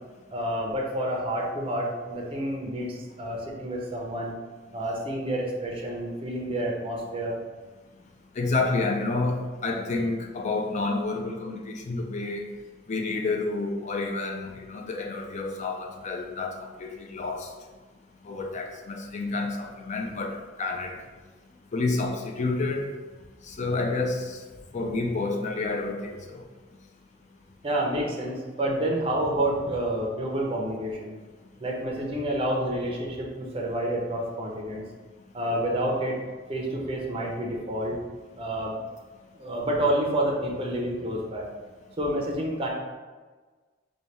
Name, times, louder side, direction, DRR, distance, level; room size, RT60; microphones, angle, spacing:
voice 1, 0.3-4.3 4.7-7.4 27.6-31.1 31.6-34.8 35.3-36.2 36.5-38.0 38.3-38.8 39.4-41.5 42.0-42.7, right 1 dB, 30° right, -1 dB, 0.5 m, -29 dB
voice 2, 8.4-12.5 12.9-17.5 18.2-21.0 21.7-22.9 23.4-24.4 24.7-26.4, left 3 dB, 40° left, 2 dB, 0.4 m, -29 dB
4.0 x 2.2 x 3.2 m, 1.3 s
head